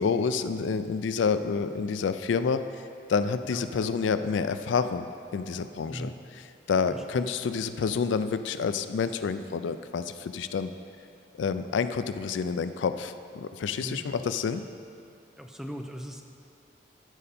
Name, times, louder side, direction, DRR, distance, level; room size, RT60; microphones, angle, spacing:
voice 1, 0.0-2.6 3.1-6.1 6.7-10.7 11.4-14.6, left 5 dB, 80° left, 11 dB, 0.4 m, -28 dB
voice 2, 6.9-7.3 13.7-14.0 15.4-16.2, equal, 5° right, 3 dB, 0.4 m, -38 dB
14.0 x 5.5 x 4.2 m, 2.5 s
head